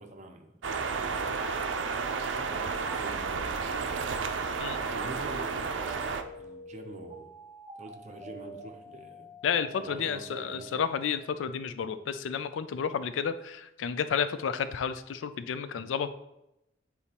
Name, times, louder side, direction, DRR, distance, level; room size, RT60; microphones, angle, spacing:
voice 1, 0.0-1.5 2.3-4.2 4.8-6.0 6.4-7.3 7.8-9.3 9.8-10.8, right 2 dB, 40° right, 5 dB, 0.7 m, -46 dB
sound 1, 0.6-6.2, right 5 dB, 80° right, 0.5 m, -32 dB
sound 2, 5.2-11.1, right 1 dB, 25° right, 2.2 m, -47 dB
voice 2, 9.4-16.1, left 7 dB, 85° left, 12 dB, 0.4 m, -31 dB
8.5 x 4.1 x 2.9 m, 0.88 s
head